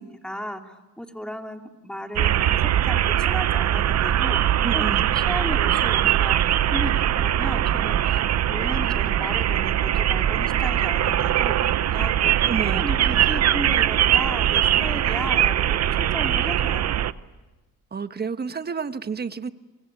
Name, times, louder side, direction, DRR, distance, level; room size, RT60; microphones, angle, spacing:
voice 1, 0.0-6.4 6.7-8.2 8.5-16.9, equal, 5° left, 4 dB, 2.8 m, -35 dB
sound 1, 2.2-17.1, right 11 dB, 60° right, 0.8 m, -21 dB
voice 2, 4.6-5.0 12.4-12.9 17.9-19.5, right 5 dB, 35° right, 11 dB, 1.3 m, -29 dB
24.5 x 24.5 x 9.4 m, 1.1 s
cardioid pair, 90°, 30 cm